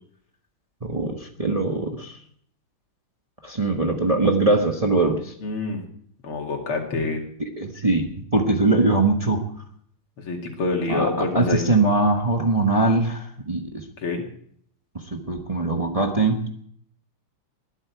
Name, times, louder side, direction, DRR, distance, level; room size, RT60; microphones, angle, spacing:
voice 1, 0.8-2.2 3.4-5.3 7.4-9.4 10.9-13.8 15.1-16.5, right 2 dB, 20° right, 3 dB, 1.1 m, -22 dB
voice 2, 5.4-5.8 6.2-7.2 10.2-11.6 14.0-14.2, left 3 dB, 85° left, 2 dB, 3.2 m, -26 dB
21.0 x 12.0 x 4.6 m, 0.63 s
omnidirectional pair, 2.3 m